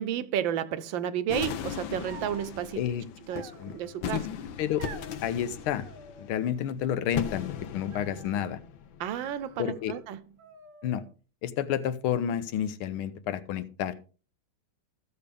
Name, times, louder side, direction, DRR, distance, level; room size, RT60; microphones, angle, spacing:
voice 1, 0.0-2.8 3.3-4.2 9.0-10.2, right 10 dB, 70° right, 1.3 m, -32 dB
sound 1, 1.3-9.5, left 8 dB, 70° left, 1.5 m, -38 dB
sound 2, 2.1-2.5 3.3-4.0 4.8-5.2 5.8-6.6 6.9-7.5 7.9-8.4 9.1-10.1 10.4-11.1, right 6 dB, 55° right, 1.0 m, -49 dB
voice 2, 3.3-3.8 4.1-4.2 4.6-4.8 5.2-5.9 6.2-8.6 9.6-9.9 10.8-11.0 11.4-13.9, left 10 dB, 85° left, 1.7 m, -30 dB
14.5 x 6.8 x 3.4 m
omnidirectional pair, 2.3 m